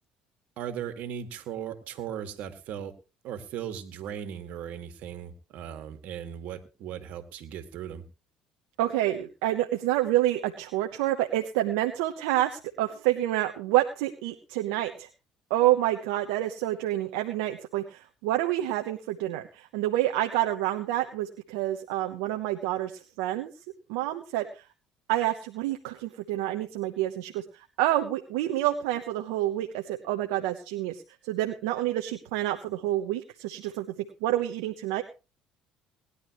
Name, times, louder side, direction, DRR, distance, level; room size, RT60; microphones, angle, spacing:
voice 1, 0.6-2.9 3.2-8.0, right 9 dB, 70° right, 8 dB, 2.2 m, -37 dB
voice 2, 8.8-15.1 15.5-23.5 23.9-24.6 25.1-33.9 34.2-35.0, right 14 dB, 85° right, 4 dB, 1.1 m, -28 dB
19.5 x 11.0 x 3.2 m, 0.30 s
supercardioid pair, 75°, 3 cm